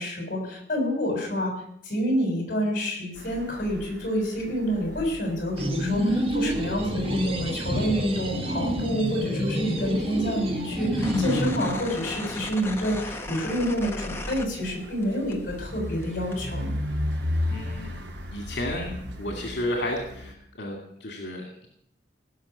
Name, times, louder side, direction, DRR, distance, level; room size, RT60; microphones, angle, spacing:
voice 1, 0.0-1.5 1.8-16.7, equal, 45° left, 0 dB, 6.7 m, -28 dB
sound 1, 3.2-20.3, left 1 dB, 80° right, 2.3 m, -37 dB
sound 2, 5.6-11.7, equal, 30° right, 1.7 m, -28 dB
sound 3, 11.0-15.0 15.3-16.4, left 2 dB, 15° left, 1.2 m, -37 dB
voice 2, 17.5-17.9 18.3-21.7, left 1 dB, 75° left, 2 dB, 2.4 m, -32 dB
17.5 x 6.6 x 9.8 m, 0.73 s
head